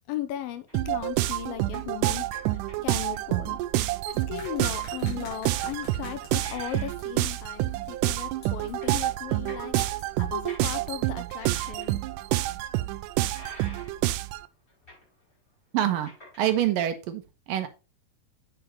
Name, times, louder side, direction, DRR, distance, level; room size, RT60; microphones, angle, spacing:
voice 1, 0.1-2.3 2.8-3.6 4.1-12.0, left 11 dB, 80° left, 2.6 m, -37 dB
sound 1, 0.7-0.9 1.7-3.4 4.4-4.9 5.4-7.5 7.8-7.9 8.4-11.0 11.3-12.2 12.5-12.6 13.3-14.2 14.5-15.4 15.7-16.5, left 1 dB, 15° left, 4.6 m, -49 dB
sound 2, 0.7-14.5, right 16 dB, 90° right, 1.8 m, -28 dB
sound 3, 4.4-10.5, left 2 dB, 50° left, 4.2 m, -49 dB
voice 2, 15.7-16.1 16.4-17.7, right 11 dB, 75° right, 2.7 m, -26 dB
8.5 x 6.5 x 3.1 m
omnidirectional pair, 4.3 m